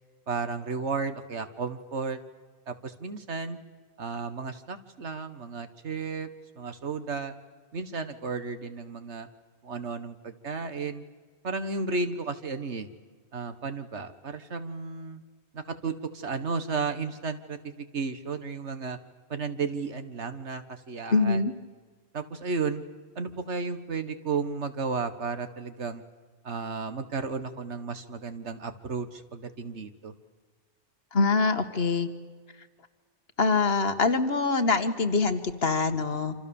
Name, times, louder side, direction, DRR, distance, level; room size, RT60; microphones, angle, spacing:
voice 1, 0.3-2.2 2.7-3.6 4.0-6.3 6.6-7.3 7.7-9.3 9.6-11.0 11.4-12.9 13.3-15.2 15.5-19.0 19.3-21.5 22.1-22.8 23.2-26.0 26.4-30.1, right 4 dB, 75° right, 10 dB, 1.8 m, -33 dB
voice 2, 21.1-21.5 31.1-32.1 33.4-36.4, left 4 dB, 60° left, 8 dB, 1.8 m, -24 dB
28.0 x 26.5 x 7.1 m, 1.5 s
omnidirectional pair, 1.2 m